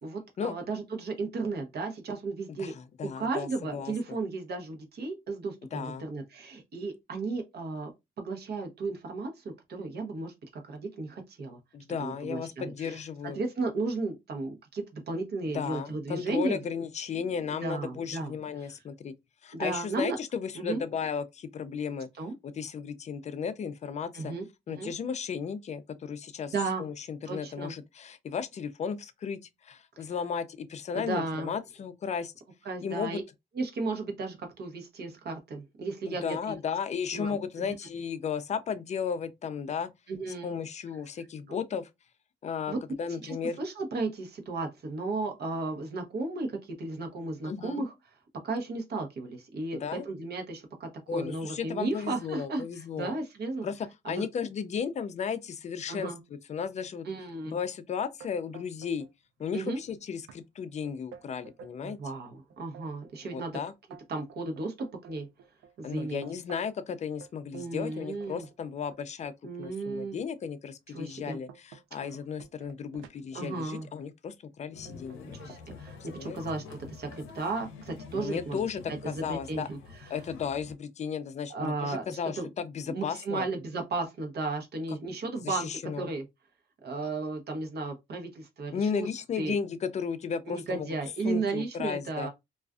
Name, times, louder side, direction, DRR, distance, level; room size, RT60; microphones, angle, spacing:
voice 1, 0.0-2.8 3.2-7.9 8.2-9.4 9.7-10.3 10.6-11.6 12.0-13.0 13.3-16.6 17.5-18.3 19.5-20.2 20.6-20.8 22.2-22.3 24.1-24.9 26.5-26.8 27.2-27.7 30.0-30.1 30.9-31.5 32.6-33.2 33.5-36.5 37.1-37.7 40.1-40.6 41.5-41.6 42.7-42.8 43.2-47.9 48.4-53.7 54.0-54.3 55.9-56.2 57.0-57.6 59.5-59.8 61.8-63.6 64.1-65.3 65.8-66.2 67.5-68.5 69.4-70.2 70.9-71.4 71.9-72.0 73.3-73.9 75.3-78.6 79.0-80.2 81.5-82.5 82.9-86.2 86.8-89.1 89.4-89.5 90.5-92.3, right 3 dB, 55° right, 0.8 m, -34 dB
voice 2, 2.5-3.9 5.7-6.0 11.7-13.4 15.5-19.1 19.4-22.1 22.4-24.3 24.7-26.5 26.8-32.3 32.8-33.2 36.1-39.9 40.4-41.9 42.4-43.6 47.4-47.8 49.8-50.1 51.1-53.2 53.6-56.1 56.5-57.1 57.5-59.1 59.4-62.0 63.3-63.7 65.8-69.3 69.6-75.4 76.2-76.4 78.1-79.7 80.1-83.5 85.4-86.1 88.7-90.9 91.2-92.3, left 6 dB, 35° left, 0.4 m, -34 dB
sound 1, 58.2-59.1 59.4-59.9 60.3-60.4 60.8-62.0 62.5-66.8 67.2-69.8 70.4-70.5 71.0-74.1 74.9-75.2 75.5-76.3, right 8 dB, 85° right, 0.5 m, -52 dB
sound 2, 74.7-80.7, left 5 dB, 85° left, 0.5 m, -47 dB
2.3 x 2.3 x 2.4 m
cardioid pair, 90°, 20 cm